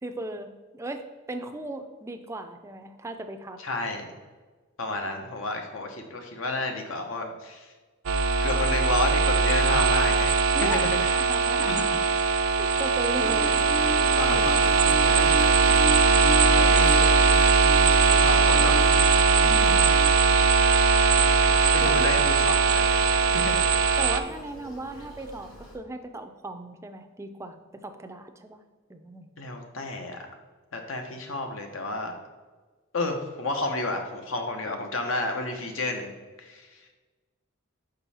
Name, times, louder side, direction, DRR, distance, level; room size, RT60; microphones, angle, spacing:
voice 1, 0.0-3.6 5.0-5.1 10.5-10.8 11.1-12.1 12.6-13.6 14.3-14.7 19.4-20.1 21.8-22.1 24.0-28.6 28.9-29.3, right 2 dB, 15° right, 6 dB, 0.4 m, -37 dB
voice 2, 3.6-4.1 4.8-7.7 8.4-10.4 10.7-11.1 11.6-11.9 14.2-15.8 16.5-17.2 18.1-18.8 21.7-22.9 23.3-23.7 29.4-30.2 30.7-32.2 32.9-36.1 36.4-36.9, left 2 dB, 70° left, 4 dB, 1.0 m, -31 dB
sound 1, 8.1-24.2, right 5 dB, 90° right, 0.5 m, -20 dB
Bird / Buzz, 13.1-25.7, left 1 dB, 90° left, 2.0 m, -37 dB
5.4 x 5.3 x 4.2 m, 1.3 s
head